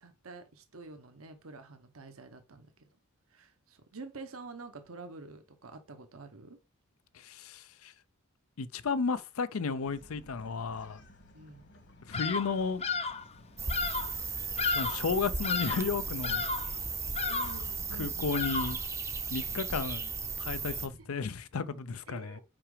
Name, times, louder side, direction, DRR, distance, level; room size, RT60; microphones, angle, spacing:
voice 1, 0.0-2.7 3.3-6.6 11.3-11.6 17.3-18.4 19.5-19.6 20.7-21.1 22.1-22.4, right 3 dB, 80° right, 1.1 m, -48 dB
voice 2, 7.1-7.9 8.6-11.0 12.0-12.8 14.6-16.4 18.0-18.8 19.3-20.1 20.4-22.4, left 5 dB, 85° left, 0.6 m, -33 dB
Bark, 9.8-18.0, left 1 dB, 60° left, 1.5 m, -56 dB
Bird vocalization bird call bird song, 12.1-12.6 12.8-13.3 13.7-14.1 14.6-15.1 15.4-15.9 16.2-16.7 17.2-17.7 18.3-18.9, left 4 dB, 30° left, 0.5 m, -33 dB
sound 1, 13.6-20.9, right 4 dB, 15° right, 0.6 m, -36 dB
5.9 x 4.9 x 4.9 m
head